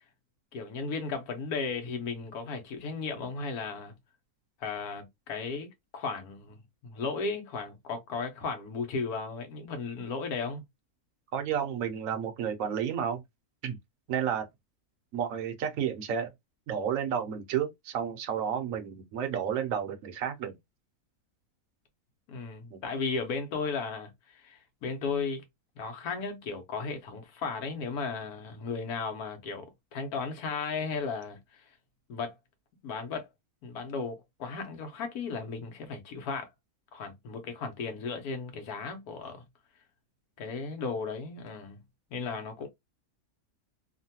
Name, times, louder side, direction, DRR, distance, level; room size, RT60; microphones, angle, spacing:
voice 1, 0.5-3.9 4.6-10.6 22.3-25.4 25.8-31.6 32.1-32.3 32.8-33.3 33.6-36.5 36.9-39.4 40.4-41.8 42.1-42.7, left 4 dB, 75° left, 1.3 m, -35 dB
voice 2, 11.3-13.2 13.6-13.8 14.1-14.5 15.1-16.3 16.7-20.5 22.7-22.8, right 8 dB, 65° right, 1.0 m, -31 dB
3.0 x 2.2 x 2.7 m
omnidirectional pair, 1.6 m